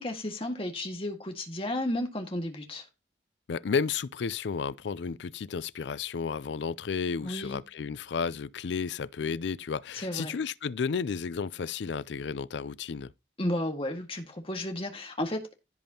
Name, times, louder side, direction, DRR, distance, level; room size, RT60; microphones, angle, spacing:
voice 1, 0.0-2.9 7.2-7.6 9.9-10.4 13.4-15.5, left 1 dB, 30° left, 1.8 m, -33 dB
voice 2, 3.5-13.1, left 5 dB, 85° left, 0.4 m, -32 dB
16.0 x 5.3 x 2.9 m
head